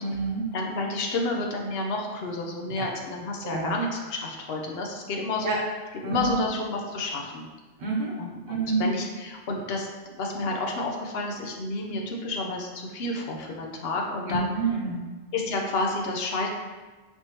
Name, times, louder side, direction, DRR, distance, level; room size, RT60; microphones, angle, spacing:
voice 1, 0.0-0.4 2.8-2.9 3.4-3.7 5.4-5.6 6.0-6.4 7.8-8.1 8.5-8.9 14.3-15.0, right 3 dB, 80° right, -3 dB, 1.3 m, -28 dB
voice 2, 0.5-5.6 6.0-7.5 8.2-9.9 10.1-14.5 15.3-16.5, left 2 dB, 70° left, 1 dB, 0.9 m, -30 dB
4.5 x 3.4 x 2.8 m, 1.3 s
omnidirectional pair, 1.1 m